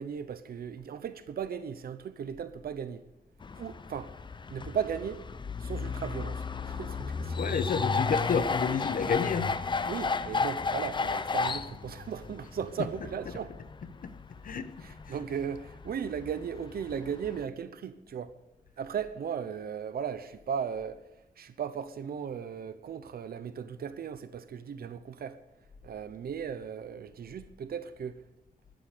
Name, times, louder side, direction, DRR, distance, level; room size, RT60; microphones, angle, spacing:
voice 1, 0.0-3.0 3.5-4.1 4.5-5.2 5.6-7.6 9.9-13.5 14.8-18.4 18.8-25.4 25.8-28.2, right 7 dB, 85° right, 0.9 m, -37 dB
sound 1, 3.4-17.4, left 4 dB, 30° left, 0.6 m, -34 dB
voice 2, 7.4-9.6 14.0-14.1 14.4-14.7 15.1-15.2, left 6 dB, 65° left, 1.2 m, -30 dB
12.5 x 12.0 x 8.4 m
wide cardioid pair, 150°, 15 cm